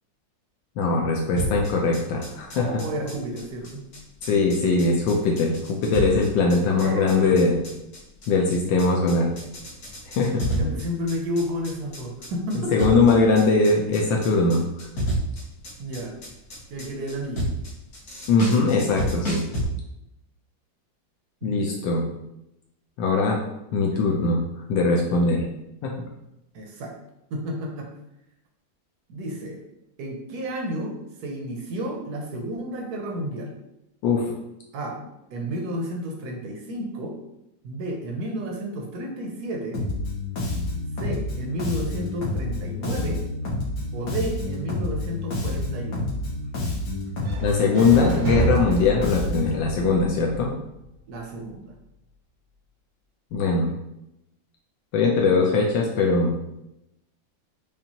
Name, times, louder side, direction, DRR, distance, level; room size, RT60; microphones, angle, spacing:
voice 1, 0.8-2.8 4.2-7.6 8.3-9.3 10.2-10.7 12.7-14.9 18.3-19.4 21.4-22.0 23.0-23.4 23.7-24.4 24.7-25.4 25.8-25.9 34.0-34.2 47.4-50.5 53.3-53.7 54.9-56.3, left 3 dB, 75° left, 0 dB, 1.3 m, -21 dB
sound 1, 1.4-19.6, right 1 dB, 45° left, 1.2 m, -31 dB
voice 2, 2.5-3.9 6.8-7.3 10.6-13.1 15.8-16.1 16.7-17.5 21.4-21.8 26.5-26.9 27.3-27.9 29.1-29.6 30.0-30.9 31.2-33.6 34.7-35.0 35.3-37.1 37.6-39.8 41.0-43.2 43.9-46.1 51.1-51.7, equal, 70° right, 1 dB, 1.0 m, -31 dB
Bass guitar, 39.7-49.6, left 2 dB, 60° left, 1.4 m, -29 dB
sound 2, 47.2-51.2, right 3 dB, 90° right, 1.5 m, -30 dB
5.2 x 2.4 x 2.8 m, 0.85 s
omnidirectional pair, 2.1 m